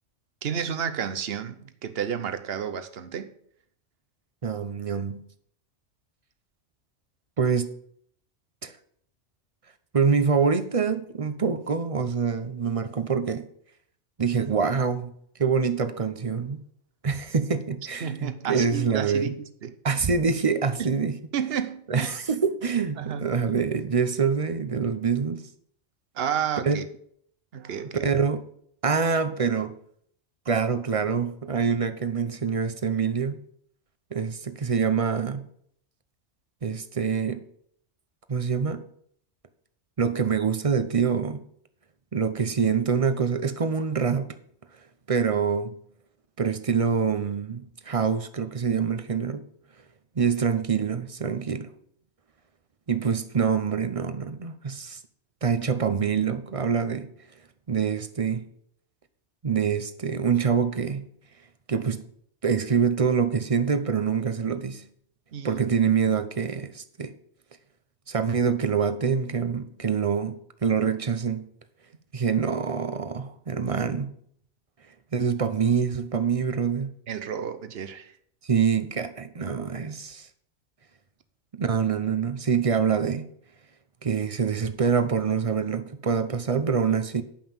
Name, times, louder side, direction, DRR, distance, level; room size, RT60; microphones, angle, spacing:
voice 1, 0.4-3.3 18.0-19.7 20.8-20.9 21.3-22.1 23.0-23.3 26.1-26.8 27.5-28.1 65.3-65.6 77.1-78.1, right 8 dB, 65° right, 1.1 m, -31 dB
voice 2, 4.4-5.2 7.4-7.7 8.6-8.7 9.9-13.5 14.2-15.1 15.4-16.6 17.0-19.3 19.8-21.2 21.9-25.5 26.7-26.8 28.0-28.4 28.8-29.7 30.5-33.4 34.1-35.4 36.6-37.4 38.3-38.8 40.0-41.4 42.1-44.3 45.1-45.7 46.4-49.5 50.2-51.7 52.9-55.0 55.4-57.1 57.7-58.4 59.4-61.0 61.7-62.0 62.4-64.8 65.4-67.1 68.1-70.4 70.6-71.5 72.1-74.1 75.1-76.9 78.5-80.3 81.5-83.3 84.0-87.2, right 6 dB, 35° right, 0.7 m, -25 dB
10.5 x 5.6 x 7.1 m
omnidirectional pair, 1.2 m